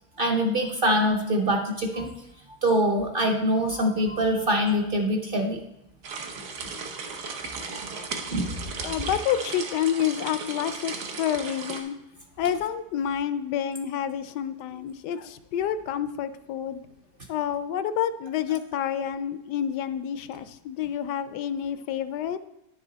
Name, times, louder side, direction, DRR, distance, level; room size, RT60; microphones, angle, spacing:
voice 1, 0.2-2.1 2.6-5.6 8.3-8.5, equal, 45° right, 3 dB, 0.7 m, -24 dB
sound 1, 6.0-11.8, right 4 dB, 85° right, 1.6 m, -36 dB
voice 2, 8.4-12.0 12.4-16.8 17.3-22.4, left 9 dB, 85° left, 12 dB, 1.2 m, -29 dB
10.0 x 6.9 x 4.0 m, 0.85 s
omnidirectional pair, 1.7 m